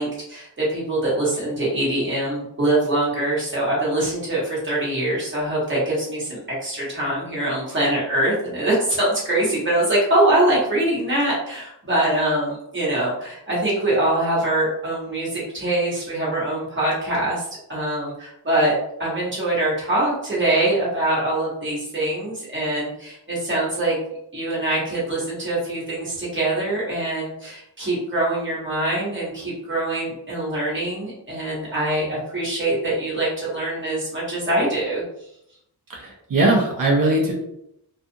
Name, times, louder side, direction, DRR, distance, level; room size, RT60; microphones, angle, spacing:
voice 1, 0.0-24.0 24.3-35.0, right 1 dB, 30° right, -7 dB, 1.3 m, -23 dB
voice 2, 35.9-37.3, right 2 dB, 55° right, -1 dB, 0.6 m, -20 dB
2.4 x 2.4 x 2.7 m, 0.79 s
wide cardioid pair, 110°, 40 cm